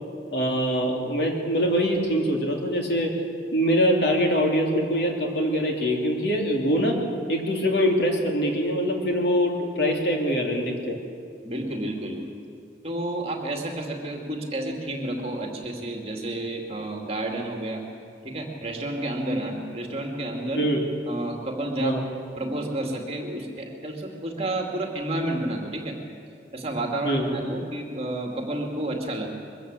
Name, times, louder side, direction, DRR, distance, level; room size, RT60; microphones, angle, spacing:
voice 1, 0.3-3.1 3.5-7.0 7.3-11.0 20.5-20.8 21.8-22.0 27.0-27.2, equal, 65° left, 1 dB, 3.0 m, -23 dB
voice 2, 11.4-12.2 12.8-17.8 18.2-20.7 21.1-22.0 22.4-26.0 26.5-29.3, right 1 dB, 35° right, 1 dB, 2.4 m, -30 dB
22.5 x 15.0 x 8.2 m, 2.4 s
head